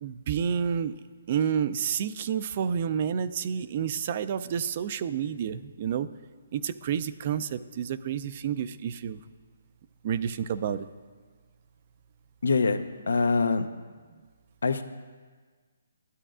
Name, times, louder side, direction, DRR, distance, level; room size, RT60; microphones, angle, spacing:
voice 1, 0.0-0.9 1.3-6.1 6.5-9.2 10.0-10.9, right 8 dB, 40° right, 14 dB, 0.3 m, -29 dB
voice 2, 12.4-12.8 13.1-13.7 14.6-14.8, left 4 dB, 90° left, 10 dB, 0.6 m, -23 dB
12.5 x 8.8 x 2.4 m, 1.5 s
hypercardioid pair, 160°, 0 cm